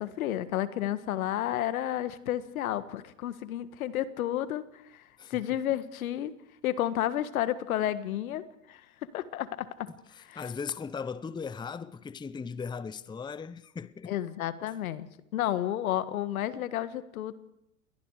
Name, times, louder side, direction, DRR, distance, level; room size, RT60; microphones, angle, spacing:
voice 1, 0.0-4.6 4.9-5.0 5.3-6.3 6.6-8.8 9.1-9.9 10.3-10.4 14.1-15.1 15.3-17.3, left 12 dB, 75° left, 1.7 m, -31 dB
voice 2, 10.1-14.1, left 5 dB, 10° left, 0.8 m, -38 dB
28.5 x 22.0 x 5.0 m
hypercardioid pair, 100°, 42 cm